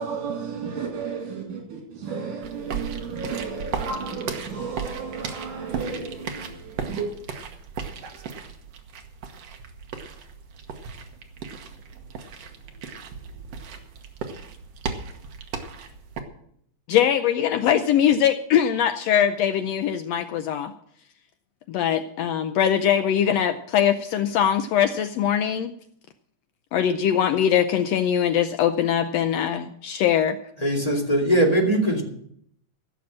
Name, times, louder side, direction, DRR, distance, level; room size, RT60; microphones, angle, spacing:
voice 1, 0.0-7.1, right 5 dB, 80° right, 4.0 m, -33 dB
sound 1, 2.4-16.2, right 6 dB, 60° right, 2.1 m, -36 dB
voice 2, 16.9-20.7 21.7-25.7 26.7-30.4, left 9 dB, 80° left, 1.5 m, -22 dB
voice 3, 30.6-32.0, right 1 dB, 15° left, 2.2 m, -20 dB
16.0 x 7.0 x 7.5 m
omnidirectional pair, 3.6 m